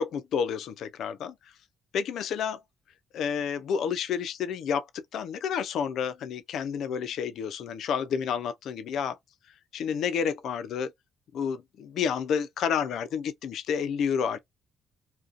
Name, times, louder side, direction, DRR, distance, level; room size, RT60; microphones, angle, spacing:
voice 1, 0.0-1.3 1.9-2.6 3.1-9.2 9.7-10.9 11.3-14.4, left 7 dB, 75° left, 0.4 m, -30 dB
2.5 x 2.2 x 2.4 m
cardioid pair, 90°, 0 cm